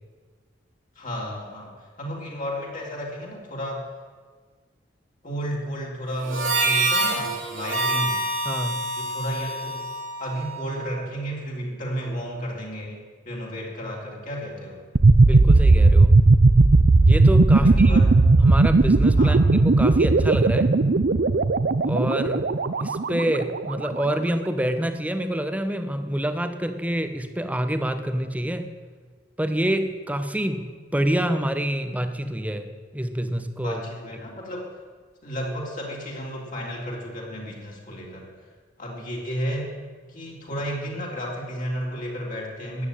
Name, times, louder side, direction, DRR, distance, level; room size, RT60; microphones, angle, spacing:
voice 1, 0.9-3.9 5.2-8.2 8.9-9.9 10.2-14.8 17.5-18.0 19.2-19.4 33.6-34.7 35.2-38.3 38.8-39.7 40.1-42.9, equal, 45° left, -3 dB, 3.4 m, -32 dB
Harmonica, 6.2-10.8, right 2 dB, 85° right, 2.9 m, -26 dB
voice 2, 8.4-8.9 15.3-16.1 17.1-18.0 18.4-20.7 21.8-22.5 22.8-28.7 29.4-33.8, right 1 dB, 10° right, 9 dB, 1.0 m, -27 dB
sound 1, 15.0-23.8, right 3 dB, 55° right, 0.6 m, -17 dB
13.5 x 9.6 x 9.1 m, 1.5 s
head